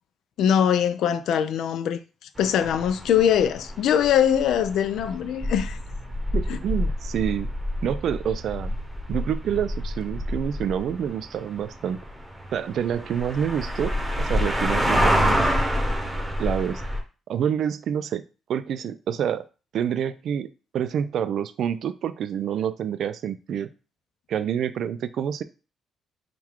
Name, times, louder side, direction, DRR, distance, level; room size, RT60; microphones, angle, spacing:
voice 1, 0.4-2.0 2.4-5.8 6.5-6.6, left 9 dB, 80° left, 0.3 m, -22 dB
sound 1, 2.4-17.0, equal, 10° right, 0.9 m, -27 dB
voice 2, 6.3-7.5 7.8-8.8 9.1-12.0 12.5-15.5 16.4-16.8 17.3-18.2 18.5-19.5 19.7-23.7 24.3-25.4, right 9 dB, 70° right, 0.3 m, -27 dB
3.7 x 2.3 x 4.5 m
cardioid pair, 90°, 0 cm